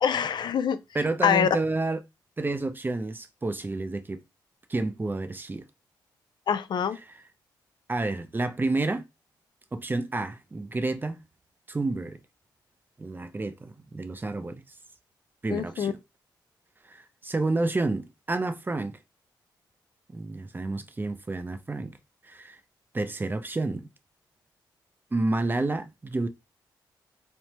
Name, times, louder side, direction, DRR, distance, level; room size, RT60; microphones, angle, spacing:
voice 1, 0.0-0.8 1.2-1.5 6.5-7.0 15.5-15.9, left 8 dB, 60° left, 0.4 m, -25 dB
voice 2, 0.9-2.0 2.4-4.2 4.7-5.6 7.1-7.2 7.9-9.0 9.7-11.2 11.7-12.2 13.0-14.6 15.4-16.0 16.9-19.0 20.1-21.9 22.2-22.6 22.9-23.9 25.1-26.3, right 2 dB, 25° right, 0.5 m, -29 dB
3.2 x 2.0 x 2.9 m
cardioid pair, 60°, 8 cm